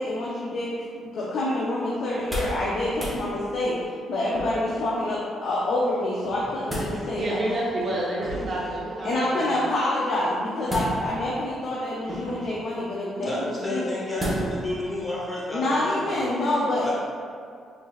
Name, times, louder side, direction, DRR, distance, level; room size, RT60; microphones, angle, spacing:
voice 1, 0.0-7.4 9.0-13.9 15.5-16.9, left 1 dB, 65° left, -6 dB, 0.5 m, -27 dB
sound 1, 2.1-2.6 2.9-3.2 4.3-4.8 6.2-7.0 8.2-8.6 10.7-11.3 12.0-12.5 14.2-14.7 15.1-15.2, right 1 dB, 5° right, 1.0 m, -32 dB
voice 2, 7.1-9.6, right 1 dB, 45° right, -5 dB, 0.7 m, -29 dB
voice 3, 13.1-16.3 16.8-16.9, left 1 dB, 15° left, -7 dB, 1.1 m, -31 dB
3.6 x 3.2 x 2.3 m, 2.2 s
cardioid pair, 90°, 0 cm